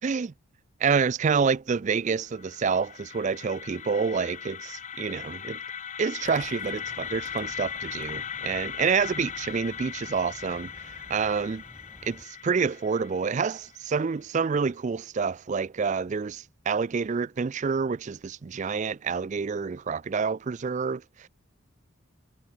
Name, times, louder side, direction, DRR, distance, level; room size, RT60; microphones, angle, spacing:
voice 1, 0.0-0.3 0.8-5.6 6.0-11.6 12.0-21.3, right 5 dB, 35° right, 0.3 m, -28 dB
sound 1, 2.1-14.1, left 8 dB, 35° left, 1.0 m, -39 dB
sound 2, 6.2-12.2, equal, 5° right, 3.6 m, -51 dB
head